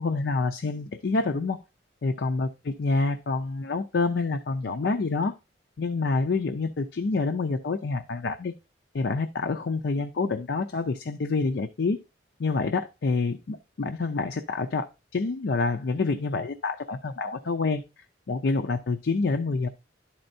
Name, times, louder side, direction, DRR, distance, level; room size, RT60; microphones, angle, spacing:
voice 1, 0.0-1.6 2.0-5.3 5.8-8.5 8.9-12.0 12.4-14.9 15.1-17.8 18.3-19.7, left 3 dB, 70° left, 5 dB, 0.5 m, -27 dB
11.0 x 4.4 x 2.6 m, 0.27 s
head